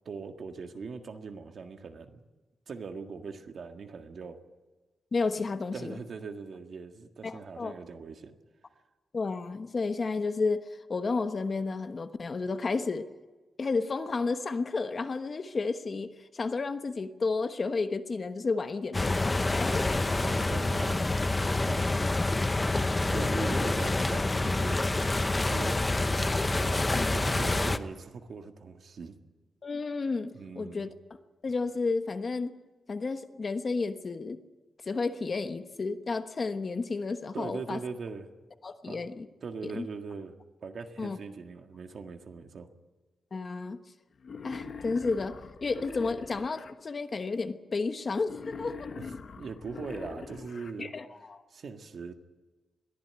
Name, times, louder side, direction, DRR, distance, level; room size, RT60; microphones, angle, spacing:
voice 1, 0.1-2.2 2.7-4.4 5.7-8.4 19.9-22.2 23.1-24.8 25.5-29.2 30.3-30.9 37.3-38.3 38.9-39.1 39.4-40.4 40.6-42.7 49.0-50.9 51.5-52.1, right 5 dB, 55° right, 5 dB, 1.7 m, -41 dB
voice 2, 5.1-6.0 7.2-7.7 9.1-13.1 13.6-20.0 23.2-23.5 26.9-27.1 29.6-30.9 31.4-32.5 32.9-34.4 34.9-37.8 38.6-39.3 39.6-39.9 41.0-41.2 43.3-43.8 44.4-48.9 50.8-51.4, left 4 dB, 35° left, 8 dB, 1.1 m, -32 dB
sound 1, 18.9-27.8, left 2 dB, 15° left, 0.8 m, -27 dB
Wild animals, 44.2-46.7 48.2-50.7, left 5 dB, 50° left, 1.4 m, -42 dB
22.0 x 14.5 x 8.8 m, 1.2 s
wide cardioid pair, 160°, 0 cm